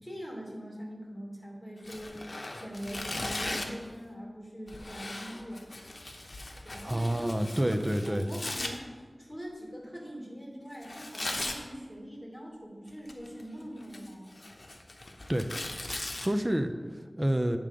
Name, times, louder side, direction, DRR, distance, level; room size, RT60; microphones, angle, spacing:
voice 1, 0.0-5.6 6.6-14.3, equal, ahead, -4 dB, 2.8 m, -42 dB
Tearing, 1.8-3.8 4.7-8.7 10.8-11.6 12.9-13.4 13.8-16.3, left 2 dB, 60° left, 0.8 m, -38 dB
voice 2, 6.8-8.3 15.3-15.5 16.2-17.6, right 1 dB, 20° right, 7 dB, 0.6 m, -28 dB
9.1 x 3.7 x 6.8 m, 1.5 s
wide cardioid pair, 55°, 0 cm